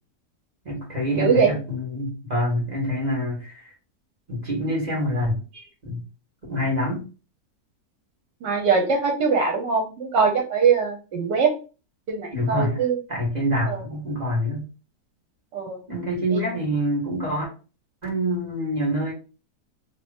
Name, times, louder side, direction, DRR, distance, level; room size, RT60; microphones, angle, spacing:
voice 1, 0.6-3.7 4.3-5.4 5.8-6.0 6.5-7.1 12.3-12.8 13.1-14.7 15.9-17.5 18.0-19.1, equal, 25° right, -3 dB, 1.4 m, -26 dB
voice 2, 1.2-1.5 6.5-6.6 8.4-11.5 12.1-13.0 13.7-13.8 15.5-15.8 16.3-16.4, right 5 dB, 75° right, 2 dB, 1.3 m, -22 dB
2.9 x 2.9 x 3.4 m, 0.34 s
omnidirectional pair, 1.9 m